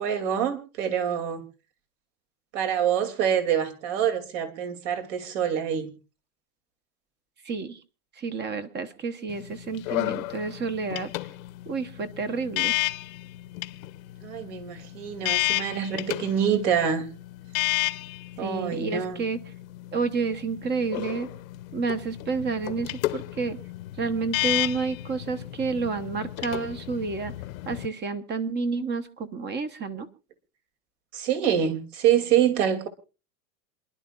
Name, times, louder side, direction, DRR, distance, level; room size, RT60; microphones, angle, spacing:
voice 1, 0.0-1.4 2.5-5.9 14.2-17.1 18.4-19.2 31.1-32.9, right 9 dB, 55° right, 2.8 m, -26 dB
voice 2, 7.4-7.8 8.1-11.1 11.7-12.8 18.4-19.4 19.9-21.3 21.7-23.6 24.0-27.3 27.6-30.1, right 4 dB, 25° right, 1.0 m, -30 dB
sound 1, 9.3-27.9, left 18 dB, 70° left, 0.9 m, -32 dB
27.5 x 11.5 x 2.4 m
supercardioid pair, 145°, 43 cm